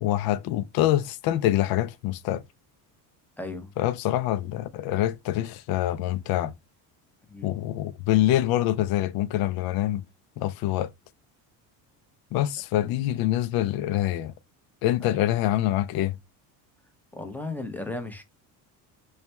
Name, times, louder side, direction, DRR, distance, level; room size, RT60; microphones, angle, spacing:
voice 1, 0.0-2.4 3.8-6.5 7.4-10.0 10.4-10.9 12.3-14.3 14.8-16.2, left 13 dB, 55° left, 0.5 m, -25 dB
voice 2, 3.4-3.7 7.3-7.5 15.0-15.2 17.1-18.2, left 2 dB, 5° left, 0.6 m, -35 dB
3.2 x 2.3 x 4.2 m
cardioid pair, 130°, 43 cm